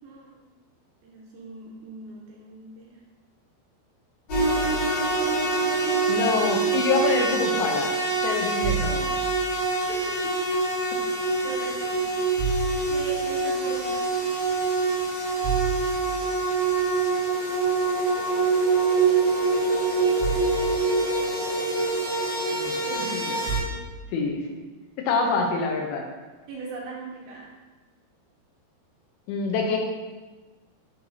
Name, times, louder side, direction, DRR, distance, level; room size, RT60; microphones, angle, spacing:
voice 1, 0.0-0.5 1.0-3.0 9.0-9.1 9.9-10.3 11.3-12.1 12.9-14.1 19.9-20.1 22.9-23.7 26.5-27.5, right 3 dB, 75° right, -3 dB, 2.4 m, -39 dB
sound 1, 4.3-23.6, right 3 dB, 50° left, 2.2 m, -25 dB
voice 2, 6.1-8.0 8.2-9.2 22.5-22.8 23.1-23.2 24.1-24.4 25.0-26.1 29.3-29.8, left 4 dB, 80° left, 1 dB, 2.3 m, -26 dB
8.2 x 4.5 x 2.7 m, 1.3 s
omnidirectional pair, 5.0 m